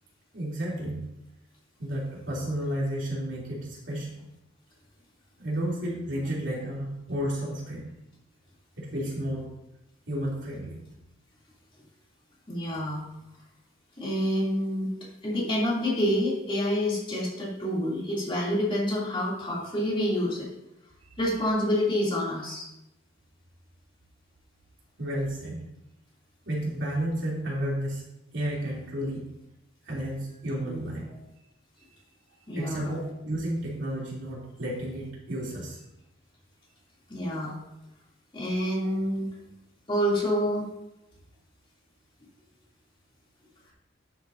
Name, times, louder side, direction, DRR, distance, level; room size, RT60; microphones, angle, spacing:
voice 1, 0.3-1.0 1.8-4.1 5.4-7.9 8.8-9.5 10.1-10.8 25.0-25.6 26.4-28.0 28.3-29.2 29.8-31.2 32.5-35.8, right 1 dB, 70° right, -5 dB, 3.2 m, -32 dB
voice 2, 12.5-13.0 14.0-14.9 15.2-20.5 21.2-22.7 30.7-30.9 32.5-32.9 37.1-37.6 38.3-39.3 39.9-40.7, equal, 25° left, -6 dB, 3.0 m, -27 dB
11.5 x 8.2 x 2.8 m, 0.90 s
head